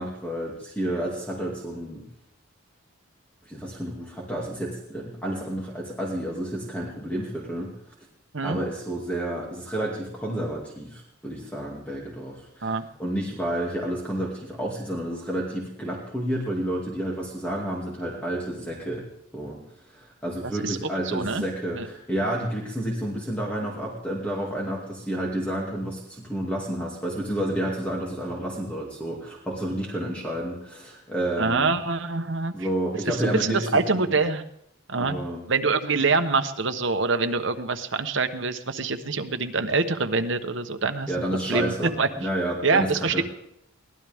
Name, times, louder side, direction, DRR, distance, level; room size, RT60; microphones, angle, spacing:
voice 1, 0.0-2.0 3.5-7.7 8.4-19.1 19.3-19.6 19.9-31.7 32.5-34.1 34.9-35.4 41.1-43.2, right 1 dB, 5° left, -3 dB, 2.4 m, -30 dB
voice 2, 20.4-20.8 21.0-21.4 21.8-21.9 31.4-32.7 33.0-34.4 34.9-35.2 35.5-41.1 41.5-42.1 42.6-43.2, right 4 dB, 60° right, 8 dB, 1.1 m, -25 dB
23.0 x 17.0 x 3.6 m, 0.76 s
head